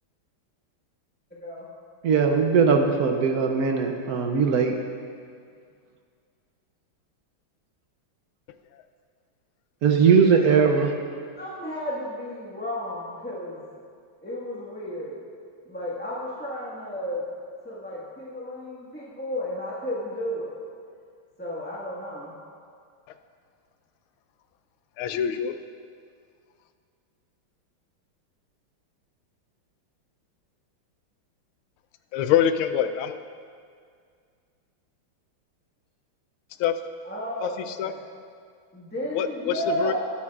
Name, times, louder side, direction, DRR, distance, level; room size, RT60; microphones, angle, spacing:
voice 1, 2.0-4.8 9.8-10.9, right 5 dB, 65° right, 3 dB, 0.9 m, -20 dB
voice 2, 11.3-13.6 14.2-15.2 15.7-17.2 17.6-20.5 21.4-22.3 37.1-37.5 37.8-37.9 38.7-39.9, equal, 5° left, -8 dB, 1.3 m, -33 dB
voice 3, 25.0-25.6 32.1-33.2 36.6-36.8 37.4-37.9 39.1-39.9, left 9 dB, 85° left, 10 dB, 1.4 m, -25 dB
19.5 x 8.6 x 2.4 m, 2.1 s
omnidirectional pair, 2.3 m